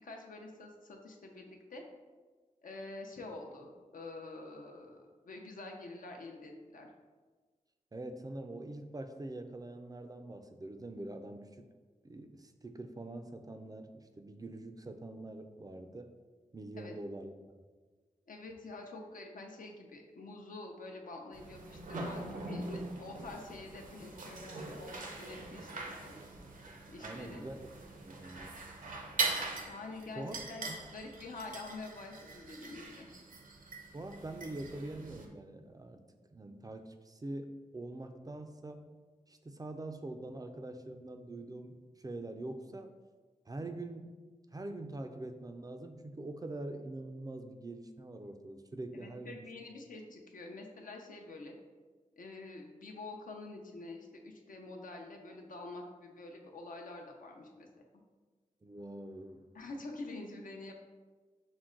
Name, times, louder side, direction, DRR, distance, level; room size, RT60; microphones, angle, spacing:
voice 1, 0.0-1.8 2.6-6.9 16.8-17.0 18.3-26.1 26.9-27.5 29.7-33.1 48.9-51.6 52.2-57.7 59.5-60.7, left 2 dB, 80° left, 2 dB, 0.6 m, -47 dB
voice 2, 7.9-11.7 12.0-16.1 16.5-17.6 22.0-22.1 27.0-27.7 28.0-28.6 30.1-30.3 30.6-30.8 33.9-38.8 39.3-42.9 43.5-44.2 44.5-49.5 58.6-59.4, right 2 dB, 25° right, 6 dB, 0.3 m, -44 dB
sound 1, 21.3-35.3, right 3 dB, 75° right, 0.6 m, -42 dB
6.0 x 2.1 x 3.7 m, 1.4 s
wide cardioid pair, 80°, 14 cm